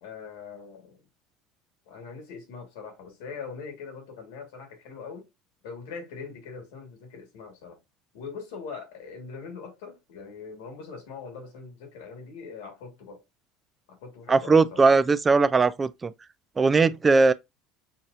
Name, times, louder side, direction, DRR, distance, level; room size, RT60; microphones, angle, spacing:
voice 1, 0.0-1.0 1.9-5.3 5.6-7.8 8.1-13.2 13.9-15.0, left 5 dB, 85° left, 1.5 m, -42 dB
voice 2, 14.3-16.1 16.6-17.3, right 4 dB, 25° right, 0.3 m, -19 dB
5.7 x 2.6 x 2.5 m
supercardioid pair, 90°, 0 cm